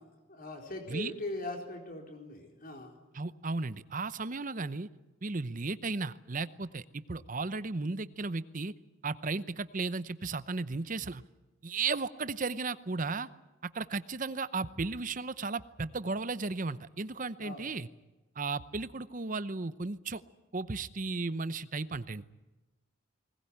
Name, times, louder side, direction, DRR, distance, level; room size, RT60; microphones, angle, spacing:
voice 1, 0.0-3.0 17.4-17.7, left 2 dB, 45° left, 3 dB, 4.3 m, -41 dB
voice 2, 3.1-4.9 5.2-8.7 9.0-11.2 11.6-13.3 13.7-17.9 18.4-20.2 20.5-22.2, right 3 dB, 40° right, 15 dB, 0.8 m, -35 dB
20.5 x 19.5 x 10.0 m, 1.1 s
head